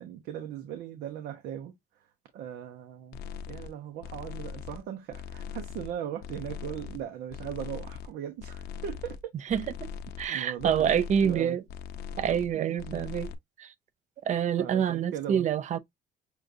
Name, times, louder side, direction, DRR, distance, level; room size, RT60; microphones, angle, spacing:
voice 1, 0.0-2.1 2.3-9.2 10.3-10.9 11.2-11.6 12.5-13.1 14.6-15.5, right 10 dB, 80° right, 0.9 m, -38 dB
sound 1, 3.1-3.7 4.0-4.8 5.1-5.9 6.2-7.0 7.3-8.1 8.4-9.2 9.5-10.3 10.6-11.4 11.7-12.5 12.8-13.3, left 7 dB, 70° left, 0.7 m, -40 dB
voice 2, 10.2-11.6 12.2-13.3 13.6-13.7 14.3-15.8, right 8 dB, 45° right, 0.5 m, -26 dB
6.3 x 2.4 x 2.6 m
cardioid pair, 110°, 17 cm